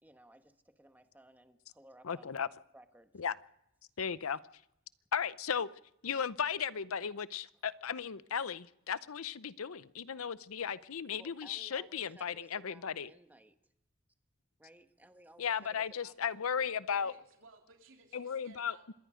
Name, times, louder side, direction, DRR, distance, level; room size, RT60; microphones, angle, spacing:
voice 1, 0.0-3.2 4.2-4.4 11.2-13.6 14.6-16.7, right 1 dB, 10° right, 7 dB, 1.4 m, -59 dB
voice 2, 2.0-2.5 3.2-3.3 4.0-4.4 5.1-5.7 6.0-13.1 15.4-17.1 18.1-18.9, left 7 dB, 80° left, 17 dB, 0.7 m, -35 dB
voice 3, 16.9-18.9, right 3 dB, 65° right, 3 dB, 3.1 m, -59 dB
26.0 x 20.5 x 5.1 m, 0.81 s
head